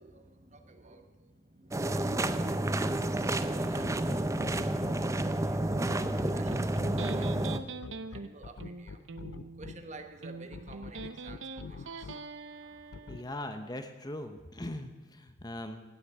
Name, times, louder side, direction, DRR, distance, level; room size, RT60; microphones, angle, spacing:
voice 1, 0.0-4.1 4.4-7.6 8.1-12.8 13.1-13.2, right 3 dB, 35° right, 6 dB, 1.1 m, -53 dB
sound 1, 1.7-7.6, right 1 dB, 15° right, 0.5 m, -30 dB
sound 2, 3.6-4.9 5.7-9.7 10.5-12.1 12.9-13.2, left 4 dB, 70° left, 0.5 m, -43 dB
Electric guitar, 6.3-13.3, right 3 dB, 75° right, 0.7 m, -43 dB
voice 2, 13.1-15.8, left 1 dB, 20° left, 7 dB, 0.8 m, -40 dB
17.5 x 6.4 x 9.0 m, 1.3 s
head